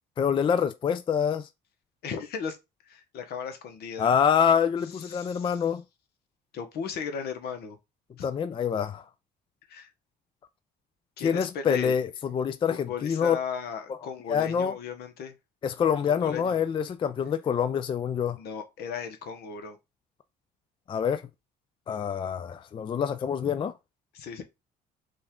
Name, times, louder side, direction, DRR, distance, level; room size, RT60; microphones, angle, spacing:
voice 1, 0.2-1.5 4.0-5.8 8.2-9.0 11.2-13.4 14.3-14.7 15.6-18.4 20.9-21.2 21.9-23.7, left 7 dB, 30° left, 0.4 m, -26 dB
voice 2, 2.0-2.6 2.9-4.1 5.0-5.6 6.5-7.8 8.2-8.3 9.7-9.9 11.2-11.9 12.7-15.3 16.1-16.6 18.4-19.8 24.1-24.4, left 6 dB, 70° left, 1.0 m, -36 dB
5.1 x 2.5 x 3.6 m
cardioid pair, 110°, 17 cm